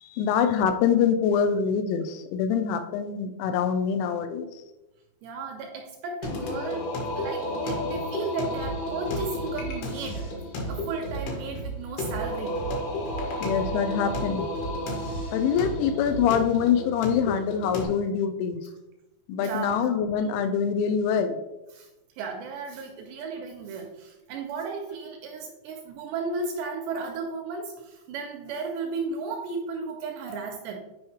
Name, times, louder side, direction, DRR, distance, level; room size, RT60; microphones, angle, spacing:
voice 1, 0.0-4.5 13.4-14.5 15.3-18.6 19.3-21.4, left 7 dB, 85° left, 8 dB, 2.9 m, -25 dB
voice 2, 5.2-6.9 7.2-10.3 10.7-12.6 15.4-15.7 19.4-19.8 21.7-21.9 22.2-30.8, right 4 dB, 80° right, 2 dB, 2.6 m, -34 dB
Singing, 6.2-17.9, left 1 dB, 65° left, 3.0 m, -32 dB
sound 1, 8.5-16.5, right 3 dB, 40° left, 1.0 m, -37 dB
9.4 x 4.8 x 3.2 m, 0.97 s
omnidirectional pair, 5.4 m